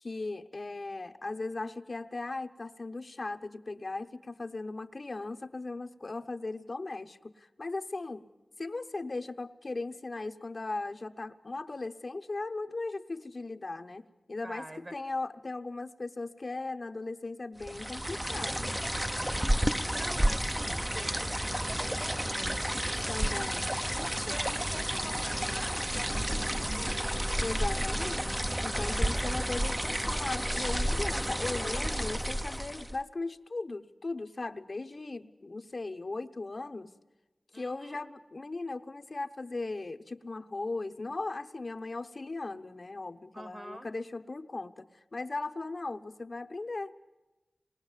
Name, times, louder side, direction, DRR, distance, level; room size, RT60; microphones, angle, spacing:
voice 1, 0.0-8.2 8.6-18.7 23.1-23.7 27.4-36.9 37.5-47.0, left 3 dB, 50° left, 8 dB, 0.9 m, -38 dB
voice 2, 14.4-14.9 19.3-23.5 24.2-27.2 37.5-38.0 43.3-43.9, right 1 dB, 30° right, 10 dB, 1.8 m, -46 dB
sound 1, 17.6-33.0, equal, 10° right, 0.7 m, -31 dB
27.0 x 20.5 x 7.3 m, 1.1 s
wide cardioid pair, 60°, 0 cm